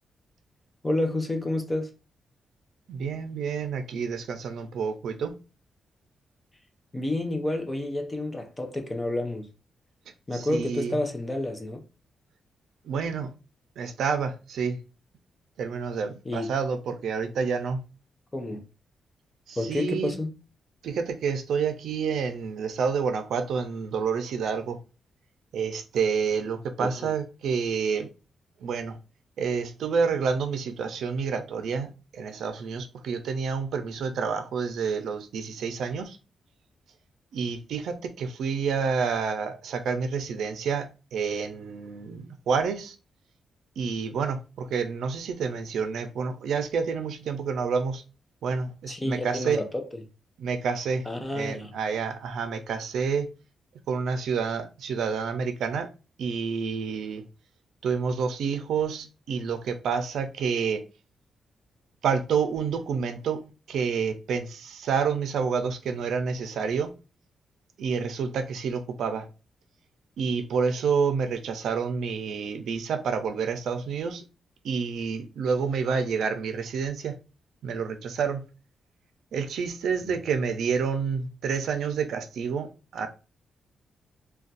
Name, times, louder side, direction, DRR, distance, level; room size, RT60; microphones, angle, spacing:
voice 1, 0.8-1.9 6.9-9.5 10.3-11.8 16.3-16.5 18.3-18.6 19.6-20.3 26.8-27.1 48.9-50.0 51.1-51.7 80.0-80.2, left 1 dB, 15° left, 0.5 m, -30 dB
voice 2, 2.9-5.3 10.3-11.0 12.8-13.3 13.8-14.8 15.6-17.8 19.5-20.1 20.8-24.8 25.5-28.1 28.6-29.0 29.4-36.2 37.3-43.0 43.8-48.0 48.4-49.6 50.4-53.3 53.9-55.9 56.2-57.2 57.8-60.8 62.0-66.9 67.8-69.3 70.2-74.2 74.6-77.2 77.6-78.5 79.3-83.1, right 6 dB, 80° right, 0.5 m, -29 dB
2.5 x 2.2 x 3.9 m
wide cardioid pair, 165°, 0 cm